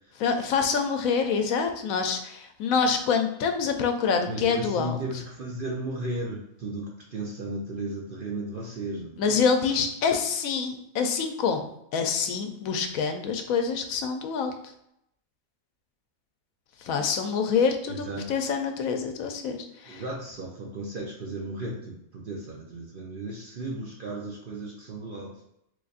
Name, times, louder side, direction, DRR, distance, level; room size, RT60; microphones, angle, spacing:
voice 1, 0.2-5.0 9.2-14.5 16.8-20.0, left 5 dB, 80° left, 6 dB, 1.0 m, -26 dB
voice 2, 4.1-9.2 17.9-18.3 19.9-25.4, right 2 dB, 55° right, -2 dB, 0.6 m, -35 dB
3.9 x 3.2 x 2.4 m, 0.77 s
omnidirectional pair, 1.4 m